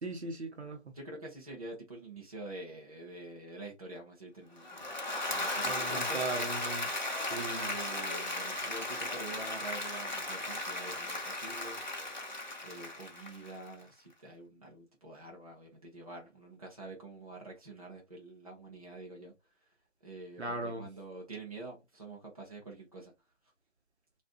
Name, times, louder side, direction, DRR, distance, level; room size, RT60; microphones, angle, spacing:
voice 1, 0.0-0.9 5.6-6.9 7.2-7.7 20.4-20.9, right 2 dB, 60° right, 1.0 m, -38 dB
voice 2, 0.9-4.9 5.3-6.2 7.3-11.8 12.6-19.3 19.6-19.7 20.0-23.1, right 2 dB, 30° right, 0.8 m, -46 dB
Applause / Crowd, 4.6-13.7, left 2 dB, 40° left, 0.6 m, -36 dB
2.8 x 2.5 x 3.7 m
figure-of-eight pair, 175°, 37 cm